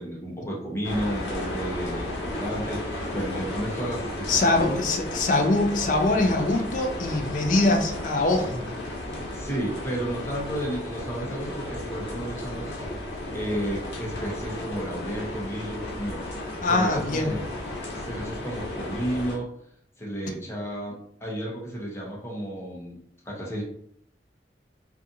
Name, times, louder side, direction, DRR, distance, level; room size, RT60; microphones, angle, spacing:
voice 1, 0.0-5.0 9.3-12.8 13.0-16.3 16.6-17.5 17.9-19.5 20.0-23.0 23.2-23.6, right 1 dB, 15° left, -4 dB, 0.7 m, -32 dB
sound 1, 0.8-19.4, left 1 dB, 85° left, 0.7 m, -34 dB
voice 2, 4.3-8.6 16.6-17.3, left 2 dB, 45° left, 4 dB, 0.4 m, -23 dB
2.5 x 2.4 x 2.7 m, 0.70 s
head